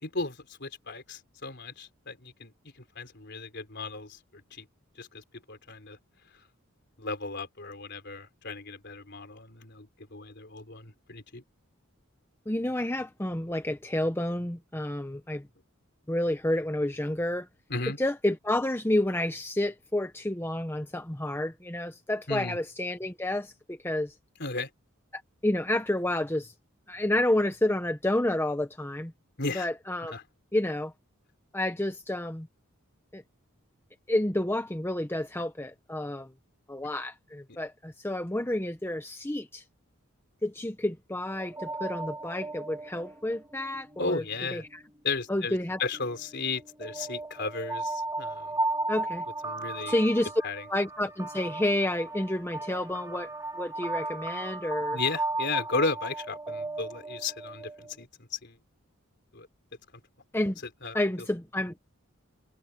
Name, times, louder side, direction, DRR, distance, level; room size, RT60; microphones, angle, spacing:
voice 1, 0.0-2.5 3.0-4.7 5.0-6.0 7.0-11.4 17.7-18.0 22.3-22.6 24.4-24.7 29.4-29.7 30.0-30.2 44.0-44.6 45.0-45.5 45.8-48.6 49.4-49.9 50.4-50.6 54.9-58.6 59.3-59.5 60.8-61.0, left 3 dB, 50° left, 4.1 m, -35 dB
voice 2, 12.5-15.5 16.1-17.5 18.0-24.1 25.1-26.5 26.9-29.1 29.5-30.1 30.5-30.9 31.5-32.5 33.1-33.2 34.1-36.3 36.7-39.6 40.4-44.2 44.5-44.8 45.3-45.8 48.9-49.2 49.9-50.3 50.7-53.3 53.6-55.0 60.3-60.6 60.9-61.7, left 1 dB, 10° left, 0.9 m, -30 dB
sound 1, 41.3-44.9 45.5-58.0, right 2 dB, 15° right, 2.3 m, -36 dB
head